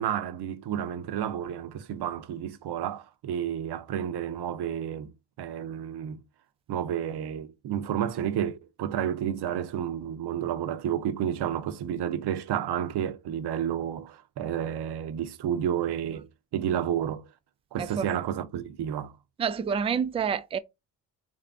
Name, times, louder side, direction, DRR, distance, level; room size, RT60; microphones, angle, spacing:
voice 1, 0.0-5.1 5.4-6.2 6.7-17.3 17.7-19.1, right 9 dB, 60° right, 0.7 m, -31 dB
voice 2, 19.4-20.6, right 7 dB, 15° right, 0.3 m, -28 dB
3.3 x 2.7 x 3.4 m
supercardioid pair, 55°, 47 cm